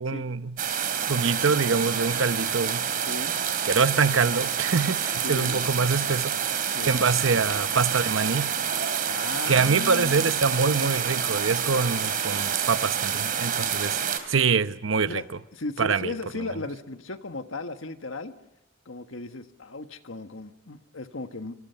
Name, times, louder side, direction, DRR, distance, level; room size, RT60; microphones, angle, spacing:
voice 1, 0.0-0.6 1.1-2.9 3.6-8.5 9.5-14.0 14.3-15.2 15.8-16.1, right 5 dB, 85° right, 0.9 m, -25 dB
sound 1, 0.6-14.2, right 8 dB, 50° right, 2.9 m, -28 dB
voice 2, 5.2-5.6 6.7-7.0 9.1-10.4 15.1-15.3 15.5-18.3 18.8-21.5, left 2 dB, 90° left, 1.6 m, -36 dB
26.5 x 26.0 x 5.8 m
head